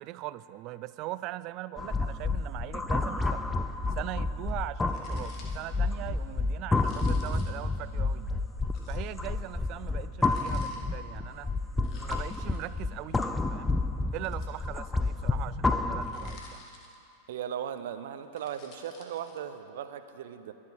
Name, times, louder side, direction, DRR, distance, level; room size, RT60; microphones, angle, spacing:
voice 1, 0.0-3.4 3.9-8.3 8.9-11.5 11.8-13.8 14.1-16.6, right 16 dB, 40° right, 17 dB, 0.4 m, -40 dB
sound 1, 1.8-16.5, left 3 dB, 10° left, 0.6 m, -30 dB
sound 2, 4.9-5.7 6.7-7.7 8.7-9.1 10.2-10.8 11.8-12.6 14.1-14.9 16.0-17.2 18.2-19.4, left 3 dB, 35° left, 2.0 m, -53 dB
voice 2, 17.3-20.5, right 9 dB, 55° right, 10 dB, 0.7 m, -37 dB
22.0 x 7.5 x 6.2 m, 2.8 s
figure-of-eight pair, 90°, 0 cm